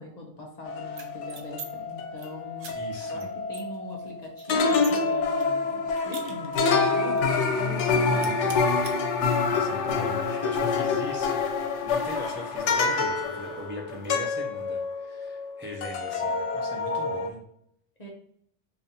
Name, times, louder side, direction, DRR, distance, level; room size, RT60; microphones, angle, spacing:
voice 1, 0.0-2.7 3.0-8.7 18.0-18.1, left 1 dB, 45° left, 0 dB, 0.7 m, -41 dB
sound 1, 0.6-4.2 4.5-15.5 15.8-17.3, left 4 dB, 90° left, 0.9 m, -27 dB
sound 2, 0.9-1.7 2.0-2.3 2.6-2.7 3.2-3.3 3.5-5.0 5.4-6.8 7.2-7.3 7.6-7.9 8.1-8.9, right 5 dB, 60° right, 0.7 m, -43 dB
voice 2, 2.8-3.2 8.1-8.4 9.5-11.4 11.8-17.4, left 1 dB, 20° right, -1 dB, 0.3 m, -40 dB
5.2 x 2.5 x 2.7 m, 0.69 s
omnidirectional pair, 1.2 m